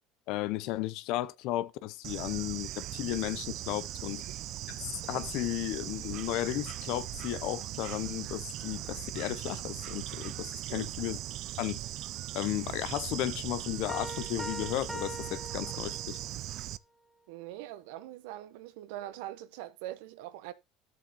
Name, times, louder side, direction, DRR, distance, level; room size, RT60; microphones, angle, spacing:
voice 1, 0.3-4.2 4.7-11.2 11.6-11.8 12.3-16.2, left 15 dB, 65° left, 0.5 m, -34 dB
Bird / Insect, 2.0-16.8, right 14 dB, 55° right, 0.4 m, -39 dB
Piano, 13.9-16.4, equal, 5° left, 1.5 m, -42 dB
voice 2, 17.3-20.5, right 14 dB, 80° right, 0.8 m, -42 dB
12.0 x 7.3 x 2.9 m
supercardioid pair, 110°, 0 cm